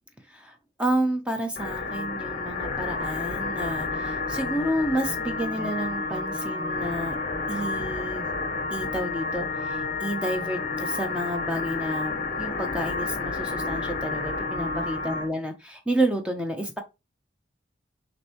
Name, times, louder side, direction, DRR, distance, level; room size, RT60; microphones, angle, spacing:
voice 1, 0.3-7.2 7.5-8.3 8.7-16.8, right 1 dB, 5° right, 0.6 m, -30 dB
sound 1, 1.6-15.3, left 3 dB, 40° left, 0.8 m, -30 dB
6.5 x 2.6 x 2.9 m
head